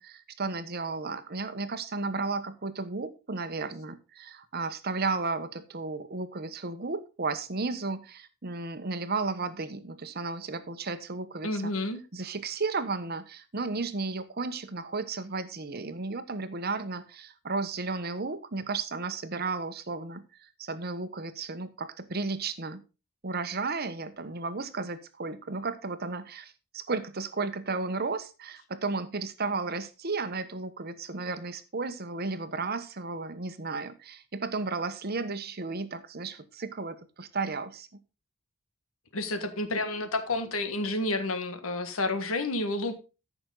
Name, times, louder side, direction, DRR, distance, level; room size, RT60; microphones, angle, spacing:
voice 1, 0.0-11.7 12.1-22.8 23.2-37.9, right 3 dB, 45° right, 11 dB, 1.0 m, -34 dB
voice 2, 11.4-12.0 39.1-43.0, left 2 dB, 70° left, 9 dB, 1.6 m, -30 dB
14.0 x 6.1 x 3.9 m, 0.30 s
head